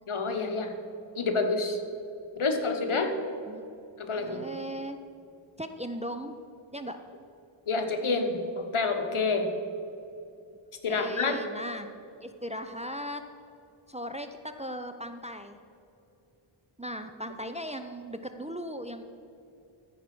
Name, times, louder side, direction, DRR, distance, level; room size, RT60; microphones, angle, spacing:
voice 1, 0.1-0.7 1.1-1.8 2.4-3.1 4.0-4.4 7.7-9.5 10.8-11.4, left 3 dB, 75° left, 5 dB, 1.2 m, -28 dB
voice 2, 4.1-5.0 5.6-6.4 6.7-7.0 10.9-11.9 12.2-13.2 13.9-15.6 16.8-19.0, equal, 15° right, 7 dB, 0.5 m, -37 dB
14.0 x 4.9 x 6.0 m, 2.7 s
wide cardioid pair, 70°, 50 cm